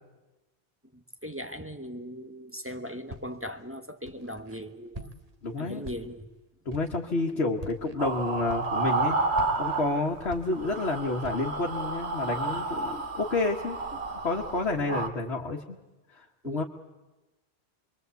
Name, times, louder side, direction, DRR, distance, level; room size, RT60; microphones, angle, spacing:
voice 1, 0.9-5.1 5.6-6.3 7.3-7.4 16.4-16.6, equal, 10° right, 6 dB, 1.1 m, -39 dB
Walk footsteps, 3.1-3.5 4.1-4.6 4.9-5.4 5.8-6.3 6.7-7.0 7.5-8.0 8.5-9.0 9.3-10.9 11.2-11.6, right 2 dB, 35° right, 1.6 m, -44 dB
voice 2, 5.4-5.9 6.7-9.2 9.6-13.8 14.2-15.8 16.1-16.6, left 2 dB, 65° left, -1 dB, 1.8 m, -29 dB
sound 1, 8.0-10.3 10.5-15.1, right 3 dB, 70° right, 1.8 m, -31 dB
27.0 x 22.0 x 8.3 m, 1.1 s
omnidirectional pair, 1.2 m